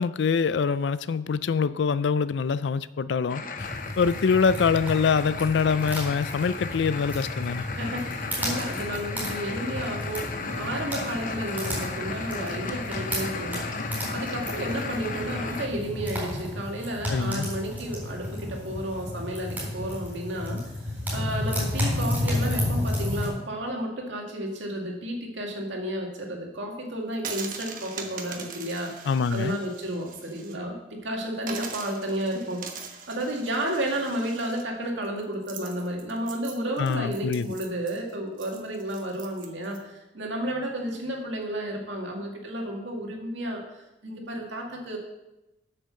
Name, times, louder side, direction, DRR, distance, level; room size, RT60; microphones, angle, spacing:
voice 1, 0.0-3.4 4.0-7.7 17.1-17.5 29.1-29.6 36.8-37.5, left 5 dB, 70° left, 16 dB, 0.4 m, -24 dB
sound 1, 3.3-15.7, left 4 dB, 45° left, 0.8 m, -35 dB
sound 2, 3.6-23.3, left 1 dB, 10° right, 4.1 m, -32 dB
voice 2, 7.8-13.7 14.1-32.6 33.1-45.0, right 1 dB, 80° right, 0 dB, 2.1 m, -32 dB
sound 3, 27.1-30.6 30.9-31.0 31.4-39.8, right 5 dB, 45° right, 1.1 m, -41 dB
8.1 x 6.7 x 6.4 m, 0.97 s
head